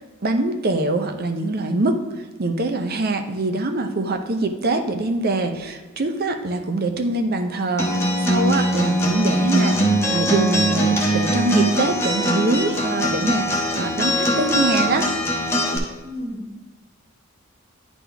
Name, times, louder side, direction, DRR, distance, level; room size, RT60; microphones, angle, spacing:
voice 1, 0.2-2.0 2.4-15.1, right 2 dB, 50° right, 6 dB, 0.7 m, -23 dB
Acoustic guitar, 7.8-15.8, equal, 15° left, 1.1 m, -21 dB
voice 2, 16.0-16.6, left 1 dB, 35° right, -4 dB, 2.0 m, -33 dB
10.0 x 4.2 x 3.4 m, 1.2 s
head